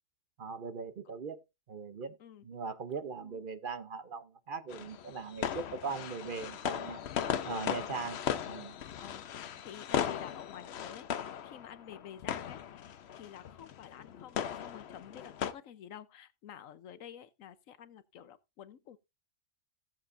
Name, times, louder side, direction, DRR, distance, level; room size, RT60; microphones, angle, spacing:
voice 1, 0.4-1.4 1.7-2.2 2.4-7.0 7.4-8.2 8.5-8.8, right 5 dB, 45° right, 0.8 m, -40 dB
sound 1, 4.7-15.5, left 9 dB, 60° left, 0.9 m, -37 dB
voice 2, 9.0-19.0, left 9 dB, 85° left, 1.2 m, -50 dB
17.0 x 7.3 x 2.6 m
omnidirectional pair, 1.3 m